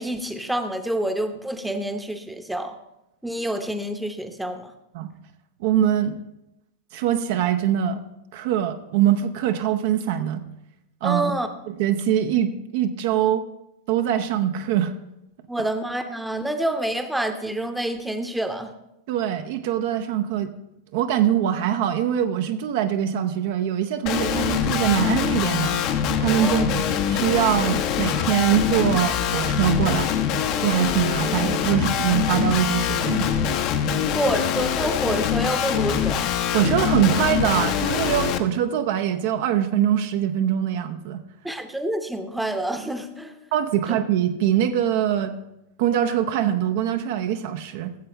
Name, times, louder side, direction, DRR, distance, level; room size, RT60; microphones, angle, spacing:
voice 1, 0.0-2.8 3.2-4.7 11.0-11.5 15.5-18.7 26.4-26.7 34.1-36.3 41.4-43.3, right 1 dB, 5° right, 7 dB, 0.8 m, -27 dB
voice 2, 5.6-6.2 6.9-8.0 8.3-10.4 11.0-11.3 11.7-13.4 13.9-14.9 19.1-20.5 20.9-25.8 26.2-30.1 30.6-33.3 36.5-41.2 43.5-45.3 45.8-47.9, right 10 dB, 50° right, 8 dB, 0.6 m, -23 dB
Guitar, 24.1-38.4, left 8 dB, 40° left, 0.7 m, -24 dB
15.0 x 7.7 x 3.3 m, 0.87 s
figure-of-eight pair, 90°, 0 cm